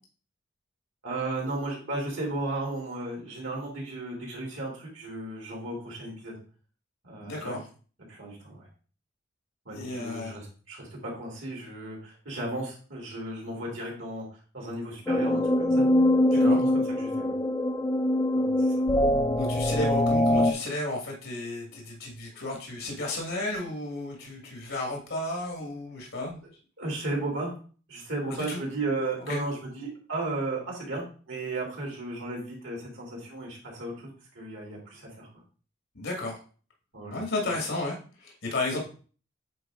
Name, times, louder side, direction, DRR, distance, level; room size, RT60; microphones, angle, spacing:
voice 1, 1.0-6.3 7.0-7.6 8.1-8.7 9.6-14.2 14.5-15.8 16.3-17.3 18.3-18.7 26.8-27.5 27.9-34.1 34.3-35.3 36.9-37.2 38.7-38.8, right 2 dB, 85° right, -2 dB, 3.0 m, -35 dB
voice 2, 7.2-7.6 9.7-10.4 16.3-16.6 19.4-26.4 28.3-28.6 29.3-29.4 36.0-36.4 37.1-38.8, left 2 dB, 80° left, 0 dB, 1.8 m, -33 dB
sound 1, 15.1-20.5, left 1 dB, 10° left, 0.4 m, -23 dB
8.4 x 3.9 x 3.7 m, 0.39 s
head